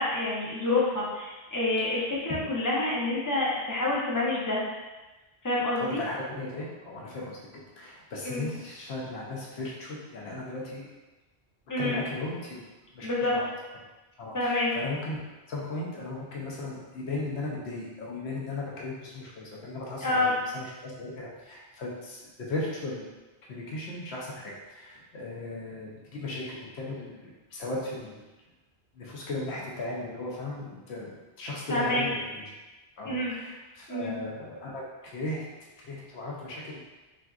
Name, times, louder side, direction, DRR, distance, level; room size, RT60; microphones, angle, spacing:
voice 1, 0.0-4.6 5.4-6.0 8.2-8.4 11.7-12.0 13.0-13.3 14.3-14.7 20.0-20.4 31.7-32.1 33.0-33.3 33.9-34.1, left 2 dB, 25° left, -5 dB, 0.5 m, -27 dB
voice 2, 5.7-7.4 7.8-10.9 11.8-12.6 12.9-13.1 13.3-13.5 14.2-15.2 15.5-23.1 23.5-28.2 28.9-32.5 33.0-35.4 35.8-36.8, left 2 dB, 85° left, -4 dB, 0.9 m, -36 dB
3.4 x 2.6 x 2.3 m, 1.2 s
omnidirectional pair, 1.1 m